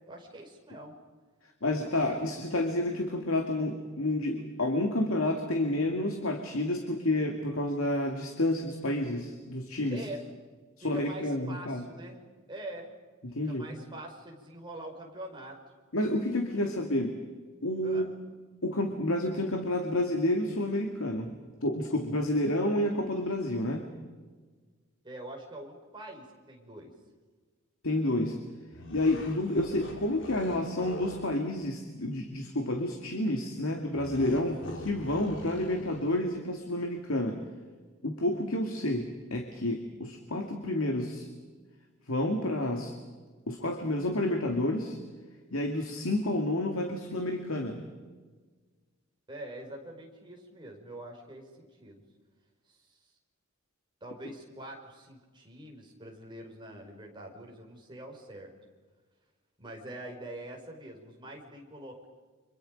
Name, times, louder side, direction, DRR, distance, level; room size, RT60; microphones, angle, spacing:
voice 1, 0.1-1.0 1.8-2.2 9.9-10.2 10.8-12.2 12.5-12.9 13.4-15.6 17.8-18.1 25.0-26.9 49.3-52.0 52.7-53.0 54.0-58.5 59.6-62.1, right 1 dB, 20° right, 0 dB, 5.0 m, -44 dB
voice 2, 1.6-10.0 10.8-11.8 13.2-13.7 15.9-17.2 17.6-18.1 18.6-21.4 21.6-23.9 27.8-28.4 28.9-37.4 38.0-41.3 42.1-42.9 43.5-45.0 45.5-47.8, left 1 dB, 80° left, 4 dB, 2.2 m, -30 dB
sound 1, 28.7-31.3 33.9-36.2, left 1 dB, 60° left, 3.7 m, -43 dB
30.0 x 26.5 x 5.2 m, 1.4 s
head